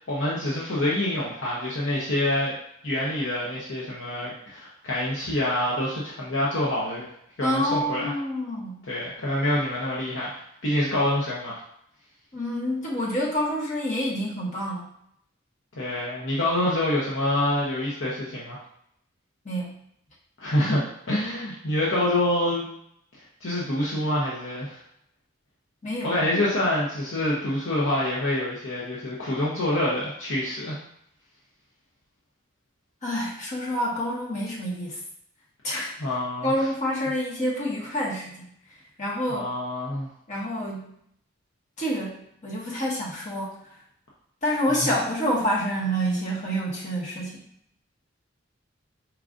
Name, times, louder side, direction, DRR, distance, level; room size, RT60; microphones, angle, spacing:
voice 1, 0.0-2.5 2.8-7.1 7.4-8.1 8.9-11.6 15.7-18.6 20.4-22.7 23.4-24.8 26.0-30.8 36.0-36.5 39.3-40.1 44.8-44.9, left 1 dB, 75° left, -6 dB, 0.8 m, -26 dB
voice 2, 7.4-8.7 12.3-14.8 19.4-19.7 25.8-26.3 33.0-35.0 35.6-35.9 36.4-38.5 39.0-39.5 40.3-40.8 41.8-43.6 44.4-47.5, equal, 35° left, -4 dB, 1.1 m, -27 dB
4.7 x 2.5 x 3.7 m, 0.73 s
head